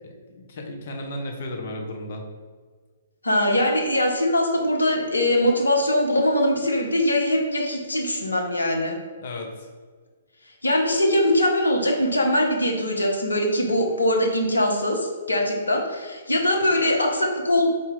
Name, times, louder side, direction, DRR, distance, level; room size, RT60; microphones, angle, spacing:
voice 1, 0.0-2.2 9.2-9.7, left 1 dB, 50° left, 2 dB, 0.8 m, -34 dB
voice 2, 3.2-8.9 10.6-17.7, left 1 dB, 80° left, 1 dB, 0.8 m, -22 dB
4.2 x 2.7 x 3.7 m, 1.5 s
figure-of-eight pair, 120°, 0 cm